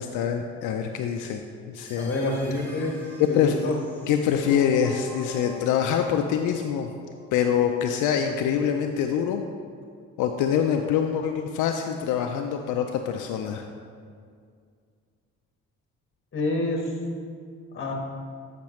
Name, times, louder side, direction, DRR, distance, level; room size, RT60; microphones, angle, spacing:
voice 1, 0.0-2.1 3.2-3.6 4.1-6.9 7.3-9.4 10.2-13.6, left 8 dB, 85° left, 4 dB, 0.5 m, -25 dB
sound 1, 1.8-7.8, equal, 5° left, 1.3 m, -44 dB
voice 2, 1.9-2.9 3.3-3.8 16.3-16.9 17.7-17.9, left 2 dB, 40° left, 0 dB, 1.5 m, -27 dB
8.6 x 5.8 x 3.1 m, 2.2 s
cardioid pair, 90°, 30 cm